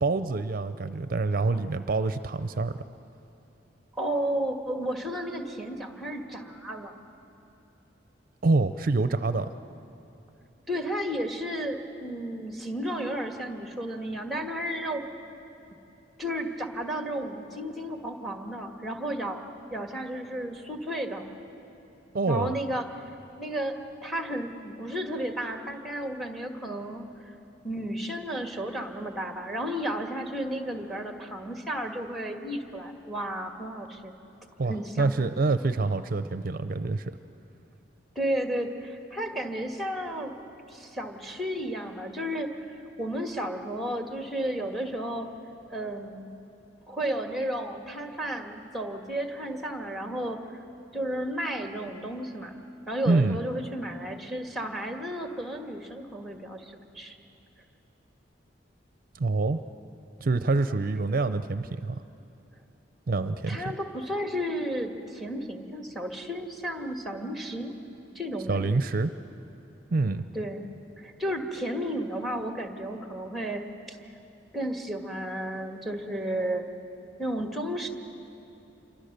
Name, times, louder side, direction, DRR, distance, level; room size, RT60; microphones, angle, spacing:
voice 1, 0.0-2.8 8.4-9.5 22.1-22.6 34.6-37.1 53.0-53.4 59.1-59.6 60.2-62.0 63.1-63.6 68.5-69.1 69.9-70.3, right 3 dB, 50° right, 11 dB, 0.5 m, -26 dB
voice 2, 4.0-6.9 10.7-15.0 16.2-19.4 19.7-21.3 22.3-23.1 23.4-23.7 24.0-27.3 27.6-34.1 34.7-35.1 38.1-40.4 40.7-42.6 43.0-45.3 45.7-46.3 46.9-50.6 50.9-52.5 52.9-57.2 63.5-67.7 68.1-68.8 70.3-70.7 71.0-73.6 73.9-74.1 74.5-76.8 77.2-77.9, right 1 dB, ahead, 4 dB, 1.6 m, -33 dB
27.5 x 24.0 x 6.7 m, 2.9 s
head